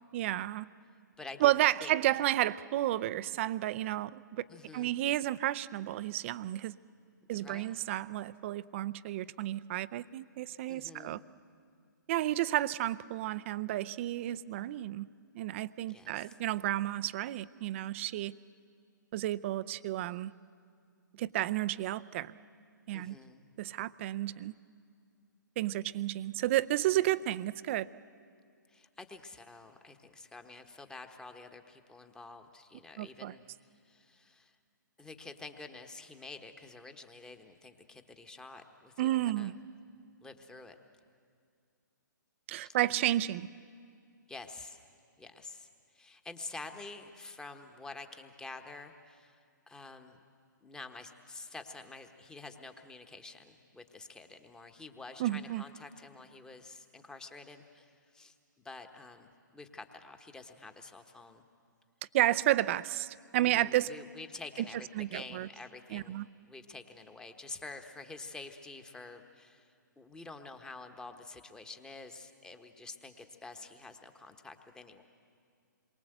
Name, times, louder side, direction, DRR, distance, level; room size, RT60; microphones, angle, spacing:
voice 1, 0.1-0.7 1.4-4.5 4.7-6.7 7.3-11.2 12.1-15.1 15.3-18.3 19.1-20.3 21.1-22.3 22.9-23.2 23.6-24.5 25.6-27.9 33.0-33.3 39.0-39.5 42.5-43.5 55.2-55.6 62.1-63.9 65.0-65.5 65.9-66.3, right 14 dB, 40° right, 16 dB, 0.5 m, -31 dB
voice 2, 1.2-1.5 1.8-2.0 4.5-4.9 7.3-7.7 10.7-11.2 15.9-16.4 22.9-23.5 28.7-33.4 33.8-34.5 35.0-39.5 40.2-40.8 42.6-42.8 44.3-44.8 45.2-49.4 49.7-50.2 50.6-58.4 58.6-61.4 63.4-66.2 66.5-75.0, left 3 dB, 5° left, 7 dB, 1.2 m, -48 dB
27.5 x 23.0 x 8.0 m, 2.3 s
hypercardioid pair, 135°, 11 cm